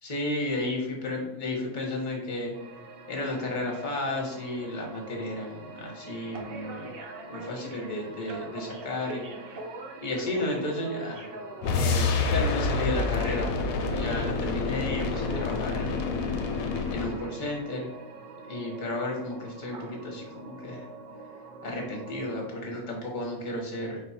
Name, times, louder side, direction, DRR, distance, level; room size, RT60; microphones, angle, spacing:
voice 1, 0.0-2.5 3.1-6.9 7.3-9.2 10.0-11.3 11.7-13.5 13.8-16.0 16.9-17.9 18.5-20.9 21.6-24.0, left 2 dB, 35° left, -1 dB, 1.0 m, -33 dB
sound 1, 2.5-22.5, right 3 dB, 60° right, 0.6 m, -42 dB
sound 2, 11.6-17.2, left 4 dB, 70° left, 1.0 m, -28 dB
4.5 x 2.3 x 4.1 m, 0.92 s
omnidirectional pair, 1.6 m